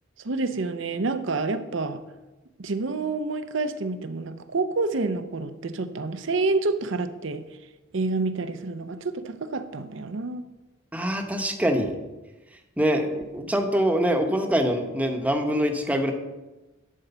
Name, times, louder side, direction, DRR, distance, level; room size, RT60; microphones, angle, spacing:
voice 1, 0.2-2.0 2.6-7.4 7.9-10.4, right 3 dB, 70° right, 10 dB, 0.7 m, -28 dB
voice 2, 10.9-11.9 12.8-16.1, equal, 5° right, 4 dB, 0.9 m, -24 dB
11.0 x 4.6 x 6.8 m, 1.1 s
head